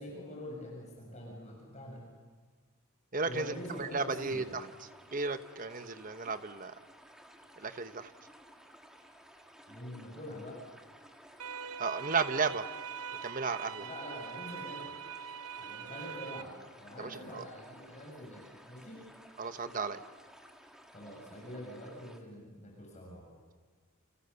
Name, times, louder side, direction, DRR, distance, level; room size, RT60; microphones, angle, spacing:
voice 1, 0.0-2.0 3.2-4.5 9.7-10.6 13.8-15.0 15.6-18.4 18.7-19.0 20.9-23.3, equal, 30° left, -2 dB, 7.0 m, -45 dB
voice 2, 3.1-6.7 7.6-8.1 11.8-12.7 13.2-13.9 17.0-17.4 19.4-20.0, right 4 dB, 35° right, 10 dB, 1.1 m, -34 dB
sound 1, 3.2-22.2, equal, 5° right, 1.8 m, -56 dB
sound 2, 11.4-16.4, right 7 dB, 80° right, 0.9 m, -42 dB
29.5 x 28.0 x 7.0 m, 1.5 s
head